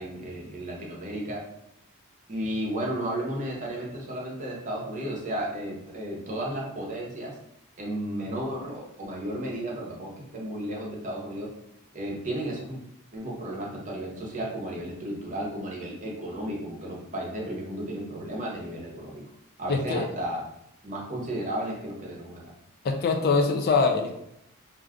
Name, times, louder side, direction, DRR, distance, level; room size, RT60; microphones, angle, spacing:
voice 1, 0.0-1.4 2.3-7.4 7.8-11.5 11.9-12.8 13.1-19.2 19.6-20.4 20.8-22.5, right 1 dB, 35° right, -2 dB, 0.8 m, -33 dB
voice 2, 19.7-20.1 22.8-24.1, left 4 dB, 45° left, 4 dB, 0.3 m, -23 dB
2.6 x 2.4 x 3.5 m, 0.80 s
head